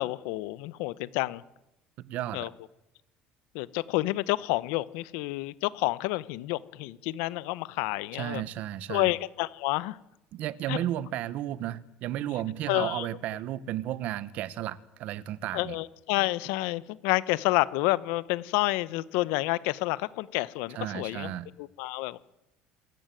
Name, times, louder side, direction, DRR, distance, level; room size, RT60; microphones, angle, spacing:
voice 1, 0.0-1.4 2.3-2.5 3.5-8.4 8.9-10.0 10.7-10.8 12.7-13.1 15.5-21.3 21.6-22.2, left 20 dB, 90° left, 0.9 m, -29 dB
voice 2, 2.0-2.5 8.1-9.1 10.3-15.8 20.7-21.5, right 12 dB, 50° right, 0.9 m, -33 dB
26.5 x 14.5 x 9.1 m
cardioid pair, 175°, 3 cm